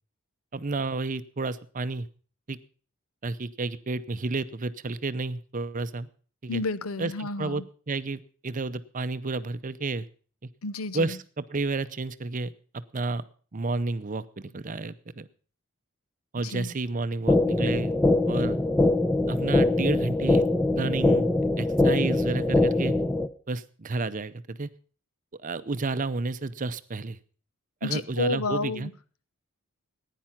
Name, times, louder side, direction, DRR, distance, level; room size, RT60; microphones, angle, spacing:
voice 1, 0.5-2.1 2.5-2.6 3.2-6.1 6.4-6.6 7.0-10.1 10.4-10.5 10.9-12.5 12.9-13.2 13.5-15.3 16.3-17.9 18.2-18.6 19.3-20.4 20.8-21.3 21.6-22.9 23.5-24.7 25.4-27.2 27.8-28.9, right 3 dB, 40° right, 0.6 m, -31 dB
voice 2, 6.5-7.6 10.6-11.2 16.4-16.7 27.8-28.9, left 3 dB, 85° left, 0.8 m, -31 dB
sound 1, 17.3-23.3, left 2 dB, 5° left, 0.7 m, -23 dB
15.0 x 10.0 x 5.8 m
head